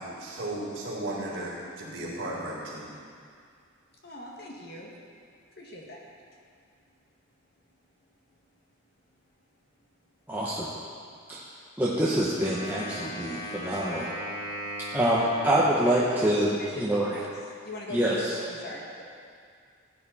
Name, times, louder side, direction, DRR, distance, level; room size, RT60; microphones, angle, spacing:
voice 1, 0.0-2.9, right 1 dB, 60° right, -5 dB, 3.9 m, -35 dB
voice 2, 4.0-4.9 5.6-6.0 16.5-17.0 17.6-19.0, left 1 dB, 50° left, -2 dB, 2.0 m, -41 dB
voice 3, 10.3-10.7 11.3-11.4 11.8-14.1 14.9-17.2 17.9-18.4, right 1 dB, 10° right, -7 dB, 1.1 m, -26 dB
Wind instrument woodwind instrument, 12.4-16.7, equal, 80° left, 4.0 m, -38 dB
16.5 x 10.0 x 4.2 m, 2.2 s
head